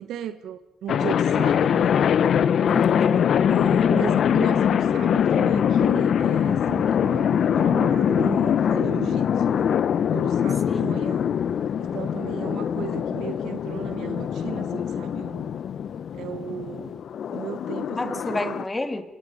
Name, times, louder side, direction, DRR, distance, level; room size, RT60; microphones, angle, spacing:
voice 1, 0.0-2.0 3.5-9.7 10.1-11.3 11.8-15.6 16.1-17.0 17.3-18.7, right 10 dB, 80° right, 1.3 m, -36 dB
sound 1, 0.9-18.6, left 8 dB, 60° left, 0.7 m, -23 dB
voice 2, 2.7-3.3 10.7-10.9 18.0-19.0, left 2 dB, 20° left, 2.2 m, -30 dB
28.5 x 23.5 x 5.3 m
cardioid pair, 90°, 0 cm